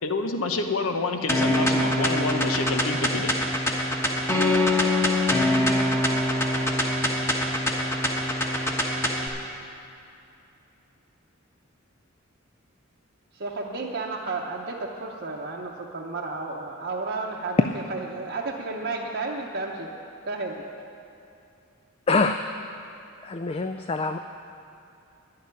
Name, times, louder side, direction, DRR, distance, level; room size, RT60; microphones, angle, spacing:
voice 1, 0.0-3.3, left 3 dB, 90° left, 6 dB, 0.9 m, -28 dB
sound 1, 1.3-9.3, left 1 dB, 10° left, 1.1 m, -24 dB
voice 2, 13.3-17.6 17.9-19.9 20.2-20.6, right 3 dB, 55° right, -2 dB, 0.9 m, -32 dB
voice 3, 22.1-22.5 23.2-24.2, left 3 dB, 30° left, 7 dB, 0.3 m, -24 dB
11.0 x 6.8 x 9.6 m, 2.7 s
head